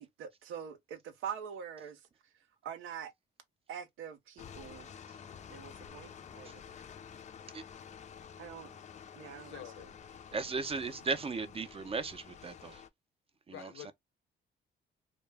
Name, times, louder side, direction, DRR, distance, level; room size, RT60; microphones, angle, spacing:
voice 1, 0.0-2.0 2.6-3.1 3.7-4.9 5.5-6.5 8.4-8.7 9.1-9.9, right 8 dB, 90° right, 0.6 m, -44 dB
sound 1, 4.4-12.9, left 7 dB, 35° left, 0.4 m, -50 dB
voice 2, 9.3-9.9 13.5-13.9, left 12 dB, 80° left, 0.6 m, -48 dB
voice 3, 10.3-12.8 13.5-13.9, right 4 dB, 30° right, 0.4 m, -36 dB
2.1 x 2.0 x 3.2 m
cardioid pair, 90°, 20 cm